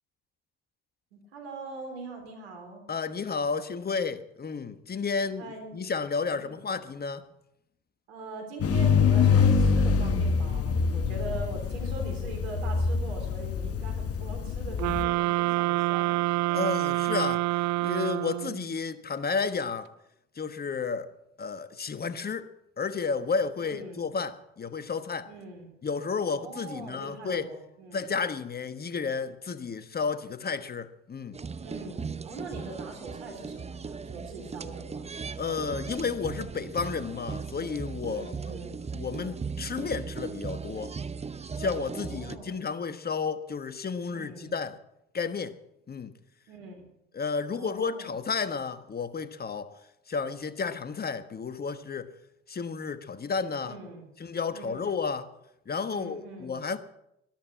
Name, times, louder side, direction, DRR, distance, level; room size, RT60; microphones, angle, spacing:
voice 1, 1.1-2.9 5.4-5.7 6.3-6.6 8.1-16.6 23.6-24.1 25.3-25.7 26.2-28.1 31.6-35.0 38.0-38.8 41.9-42.6 44.1-44.5 46.5-46.9 47.5-48.1 53.6-54.1 54.5-54.9 55.9-56.5, right 3 dB, 85° right, 3.6 m, -42 dB
voice 2, 2.9-5.5 5.7-7.2 16.5-17.5 17.8-19.9 20.3-21.1 21.4-22.5 22.8-25.3 25.8-27.5 27.9-31.4 35.4-38.4 38.9-40.9 41.6-44.8 45.1-45.6 45.9-46.1 47.1-49.7 50.1-52.1 52.5-53.8 54.2-55.3 55.7-56.8, left 5 dB, 30° left, 1.3 m, -32 dB
sound 1, 8.6-15.0, left 5 dB, 50° left, 1.3 m, -25 dB
sound 2, 14.8-18.7, right 17 dB, 65° right, 0.5 m, -27 dB
sound 3, 31.3-42.4, right 5 dB, 20° right, 0.8 m, -38 dB
13.5 x 11.0 x 7.4 m
hypercardioid pair, 60°, 31 cm